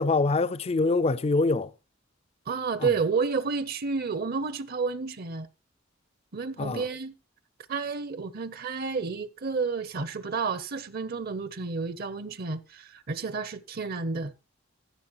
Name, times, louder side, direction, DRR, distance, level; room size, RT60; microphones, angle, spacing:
voice 1, 0.0-1.7 2.8-2.9 6.6-6.8, left 3 dB, 30° left, 0.4 m, -24 dB
voice 2, 2.5-5.5 6.3-7.1 7.7-14.3, right 4 dB, 50° right, 0.7 m, -30 dB
15.5 x 7.3 x 3.0 m
head